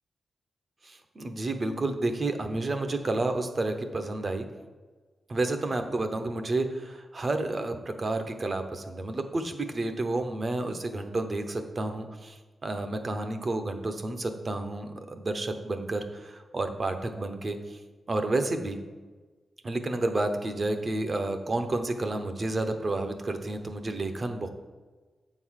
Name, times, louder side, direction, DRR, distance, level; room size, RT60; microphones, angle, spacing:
voice 1, 0.8-4.5 5.3-17.8 18.1-18.8 19.6-24.5, right 2 dB, 40° right, 7 dB, 0.7 m, -30 dB
7.8 x 3.9 x 6.3 m, 1.3 s
wide cardioid pair, 110°, 0 cm